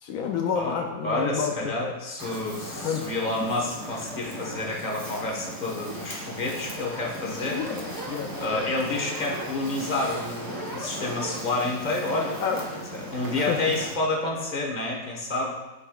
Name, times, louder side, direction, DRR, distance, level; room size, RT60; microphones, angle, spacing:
voice 1, 0.0-1.9 2.8-3.1 7.4-8.7 9.8-9.9 12.4-12.6 13.4-13.6, left 6 dB, 75° left, 2 dB, 1.0 m, -30 dB
voice 2, 1.0-7.6 8.4-12.4 12.9-15.5, left 2 dB, 30° left, -2 dB, 1.3 m, -29 dB
Fire, 2.2-13.9, right 1 dB, 15° right, 0.9 m, -37 dB
11.5 x 4.8 x 2.3 m, 1.1 s
omnidirectional pair, 1.5 m